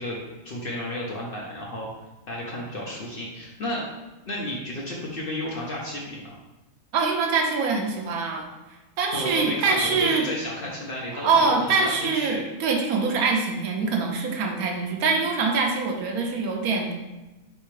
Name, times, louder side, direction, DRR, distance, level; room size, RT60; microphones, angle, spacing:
voice 1, 0.0-1.9 2.3-3.8 4.2-6.4 9.1-12.4, left 1 dB, 50° left, -3 dB, 0.7 m, -32 dB
voice 2, 6.9-8.5 9.0-10.3 11.1-16.9, right 4 dB, 80° right, 1 dB, 1.2 m, -24 dB
4.4 x 3.3 x 3.1 m, 1.1 s
omnidirectional pair, 1.5 m